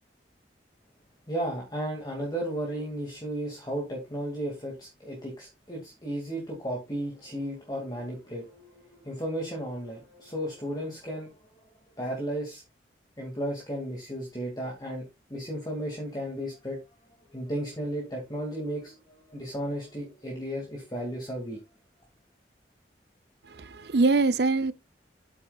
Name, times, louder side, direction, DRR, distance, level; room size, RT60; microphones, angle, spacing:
voice 1, 1.3-11.4 12.0-12.6 13.2-16.8 17.3-21.6, right 1 dB, 25° left, 2.3 m, -34 dB
voice 2, 23.5-24.7, right 3 dB, 65° right, 0.7 m, -23 dB
8.7 x 8.7 x 2.4 m
head